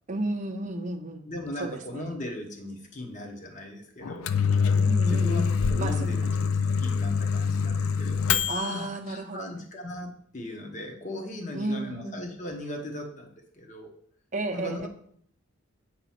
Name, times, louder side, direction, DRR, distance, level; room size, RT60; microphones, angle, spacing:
voice 1, 0.1-1.3 1.6-2.1 4.7-6.2 6.4-6.6 8.5-9.6 11.5-12.2 14.3-14.9, right 2 dB, 35° right, 5 dB, 0.6 m, -33 dB
voice 2, 1.2-4.3 5.1-5.4 5.7-8.2 8.6-13.9 14.5-14.9, left 1 dB, 35° left, 3 dB, 1.0 m, -38 dB
Microwave oven, 4.0-8.8, left 5 dB, 80° left, 0.4 m, -25 dB
8.0 x 3.0 x 5.7 m, 0.62 s
head